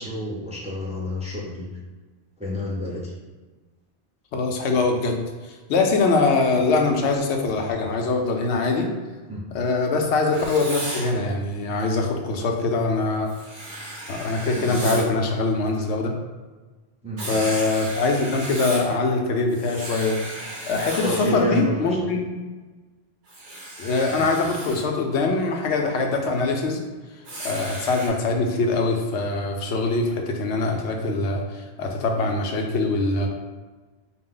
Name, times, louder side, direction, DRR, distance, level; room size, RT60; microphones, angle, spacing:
voice 1, 0.0-1.7 2.4-3.2 9.3-9.4 14.5-15.1 17.0-17.4 21.0-22.1 24.1-24.3, right 1 dB, 10° right, -5 dB, 0.6 m, -29 dB
voice 2, 4.3-8.9 9.5-13.3 14.1-16.1 17.3-20.2 20.6-22.3 23.8-26.8 27.4-33.3, left 3 dB, 80° left, 2 dB, 0.9 m, -23 dB
Writing, 10.3-11.1 13.3-15.1 17.2-18.9 19.5-21.4 23.3-24.8 27.2-28.1, right 1 dB, 50° right, 1.1 m, -35 dB
4.8 x 2.2 x 3.7 m, 1.3 s
omnidirectional pair, 1.1 m